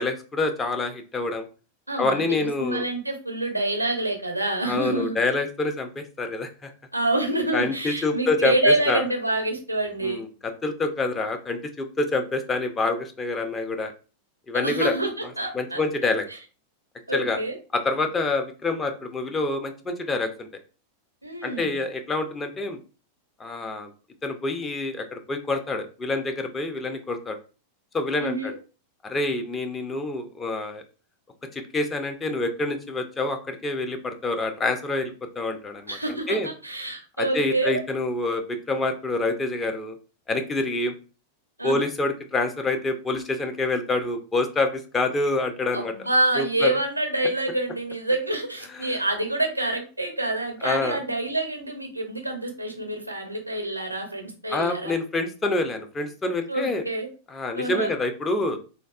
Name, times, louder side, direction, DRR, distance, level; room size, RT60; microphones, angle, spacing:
voice 1, 0.0-1.4 2.0-2.8 4.6-6.7 7.5-9.0 10.0-13.9 14.5-14.9 15.5-16.3 17.1-17.4 17.7-20.5 21.4-22.8 23.4-23.9 24.2-27.4 27.9-28.5 29.0-30.8 31.5-36.0 36.3-36.5 37.2-40.0 40.3-40.9 41.6-45.9 46.4-46.8 48.8-49.0 50.6-51.0 54.5-56.8 57.3-58.6, left 2 dB, 20° left, 6 dB, 0.5 m, -27 dB
voice 2, 1.9-5.2 6.9-10.2 14.5-15.1 15.4-15.8 17.1-17.6 21.2-21.7 28.2-28.6 35.9-37.8 41.6-41.8 45.7-54.9 56.5-57.1 57.6-57.9, right 2 dB, 85° right, 4 dB, 0.6 m, -27 dB
3.4 x 2.3 x 2.3 m, 0.35 s
figure-of-eight pair, 90°, 0 cm